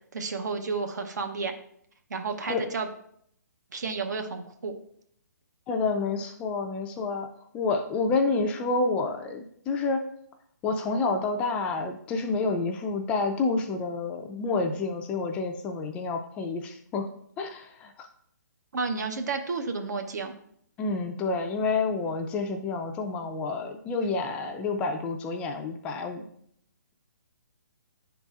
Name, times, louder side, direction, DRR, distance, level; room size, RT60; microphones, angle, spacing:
voice 1, 0.1-1.6 2.1-2.9 3.7-4.7 18.7-20.3, right 4 dB, 65° right, 5 dB, 0.9 m, -31 dB
voice 2, 5.7-7.3 7.5-10.1 10.6-17.1 17.4-18.1 20.8-26.3, left 3 dB, 10° left, 5 dB, 0.4 m, -29 dB
10.5 x 4.0 x 2.4 m, 0.68 s
hypercardioid pair, 155°, 10 cm